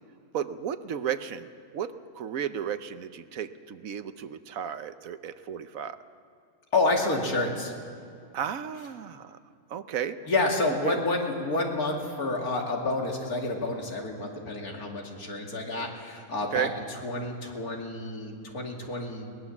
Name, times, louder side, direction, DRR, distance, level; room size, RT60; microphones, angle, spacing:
voice 1, 0.3-1.5 1.7-6.0 8.3-9.4 9.7-10.2 10.9-11.0 16.5-16.7, right 9 dB, 70° right, 11 dB, 1.2 m, -33 dB
voice 2, 6.7-7.7 10.3-19.4, left 2 dB, 80° left, 0 dB, 3.0 m, -29 dB
22.0 x 19.0 x 7.2 m, 2.4 s
omnidirectional pair, 1.5 m